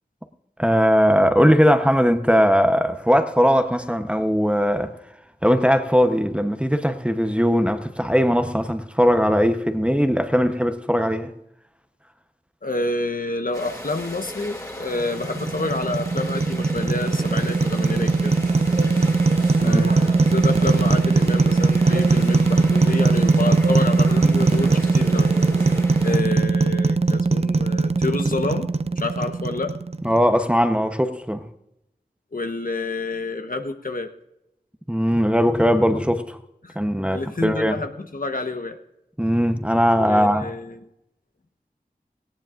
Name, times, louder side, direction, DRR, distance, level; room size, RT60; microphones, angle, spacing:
voice 1, 0.6-5.0 5.4-11.3 19.6-19.8 30.0-31.5 34.9-36.4 36.7-37.8 39.2-40.5, equal, 5° right, 0.9 m, -19 dB
voice 2, 12.6-18.3 19.6-25.3 26.0-29.8 32.3-34.1 36.6-36.8 37.1-38.8 40.0-40.8, left 2 dB, 55° left, 1.1 m, -28 dB
sound 1, 13.5-26.2, left 1 dB, 20° left, 2.5 m, -37 dB
sound 2, 15.0-30.2, right 3 dB, 40° right, 0.5 m, -20 dB
sound 3, 17.0-25.8, right 2 dB, 85° right, 4.3 m, -36 dB
18.0 x 17.5 x 2.6 m
wide cardioid pair, 70°, 17 cm